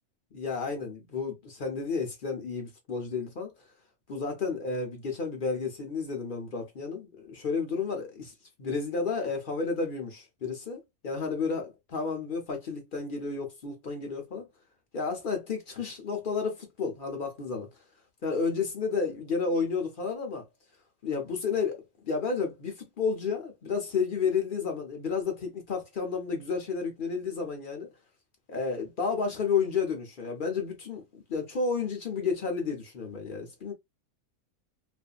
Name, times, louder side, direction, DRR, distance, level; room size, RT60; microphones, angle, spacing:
voice 1, 0.3-3.5 4.1-8.3 8.6-14.5 14.9-17.7 18.2-20.4 21.0-27.9 28.5-33.7, left 5 dB, 60° left, 0.5 m, -31 dB
2.6 x 2.4 x 2.2 m
omnidirectional pair, 1.6 m